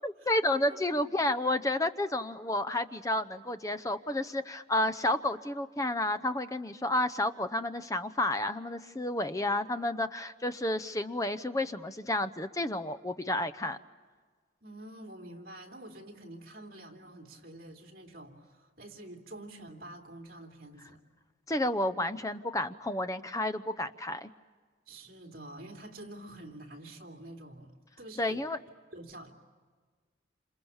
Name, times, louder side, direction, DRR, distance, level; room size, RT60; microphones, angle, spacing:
voice 1, 0.0-13.8 21.5-24.3 28.2-28.6, left 1 dB, 15° left, 12 dB, 0.7 m, -31 dB
voice 2, 0.7-1.0 14.6-21.0 24.9-28.4 28.9-29.3, right 1 dB, 50° right, 4 dB, 3.1 m, -47 dB
28.5 x 27.0 x 7.2 m, 1.5 s
head